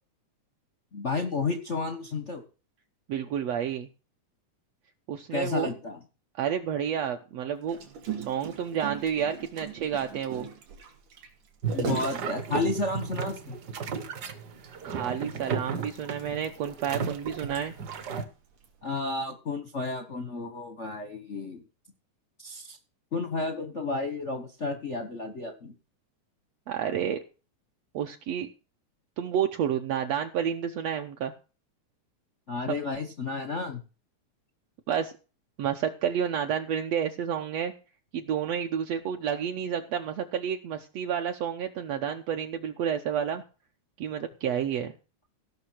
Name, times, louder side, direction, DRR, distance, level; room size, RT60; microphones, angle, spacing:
voice 1, 0.9-2.4 5.3-6.0 11.7-13.6 18.8-21.6 22.4-22.8 23.1-25.7 32.5-33.8, left 3 dB, 65° left, 6 dB, 0.7 m, -32 dB
voice 2, 3.1-3.9 5.1-5.7 6.4-7.8 8.3-10.5 14.8-17.7 26.7-27.2 27.9-28.5 29.2-31.3 34.9-35.1 35.6-37.7 38.1-43.4 44.0-44.9, right 8 dB, 70° right, 4 dB, 1.9 m, -30 dB
Gurgling, 7.7-13.2 13.7-13.8 14.1-14.3 14.6-14.7 15.5-18.0 18.6-18.8, right 6 dB, 85° right, 3.8 m, -38 dB
sound 1, 11.6-18.3, right 6 dB, 50° right, 1.2 m, -35 dB
16.0 x 6.2 x 6.2 m, 0.34 s
omnidirectional pair, 3.5 m